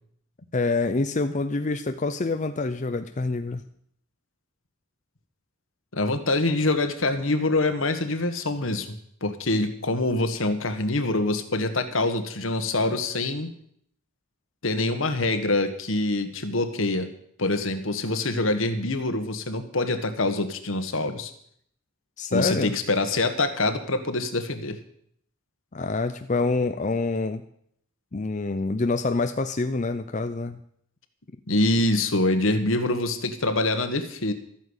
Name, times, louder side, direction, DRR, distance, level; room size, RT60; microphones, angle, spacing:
voice 1, 0.5-3.6 22.2-22.7 25.7-27.4 28.1-30.6, left 3 dB, 35° left, 8 dB, 0.6 m, -26 dB
voice 2, 5.9-13.5 14.6-17.1 17.4-21.3 22.3-24.8 31.5-34.3, left 2 dB, 75° left, 8 dB, 1.6 m, -25 dB
13.0 x 9.3 x 8.1 m, 0.67 s
head